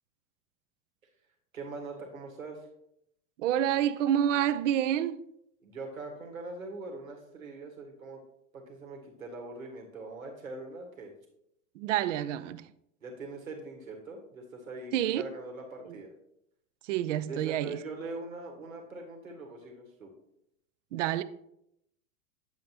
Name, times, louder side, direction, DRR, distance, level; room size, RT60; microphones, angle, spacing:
voice 1, 1.5-2.7 5.6-8.2 8.5-11.1 13.0-16.1 17.2-20.1, right 3 dB, 90° right, 1.7 m, -42 dB
voice 2, 3.4-5.2 11.8-12.7 14.9-15.3 15.9-16.0 16.8-17.8 20.9-21.2, right 11 dB, 65° right, 0.6 m, -28 dB
9.3 x 7.1 x 2.8 m
hypercardioid pair, 95°, 40 cm